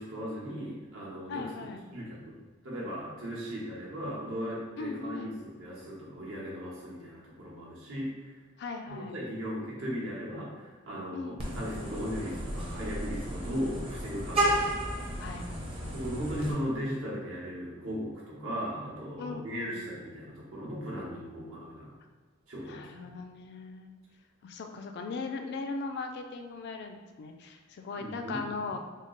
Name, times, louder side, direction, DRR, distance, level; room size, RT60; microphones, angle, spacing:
voice 1, 0.0-1.4 1.9-8.3 8.9-14.7 15.9-21.9 22.5-23.1 28.0-28.7, equal, 70° right, -5 dB, 1.0 m, -37 dB
voice 2, 1.3-1.9 4.8-5.4 8.6-9.2 11.1-11.7 15.2-16.4 19.2-19.9 22.7-23.9 24.4-28.9, left 4 dB, 55° left, 5 dB, 0.3 m, -39 dB
Vehicle horn car horn honking, 11.4-16.5, right 1 dB, 25° right, 0.7 m, -33 dB
3.6 x 2.0 x 3.7 m, 1.4 s
head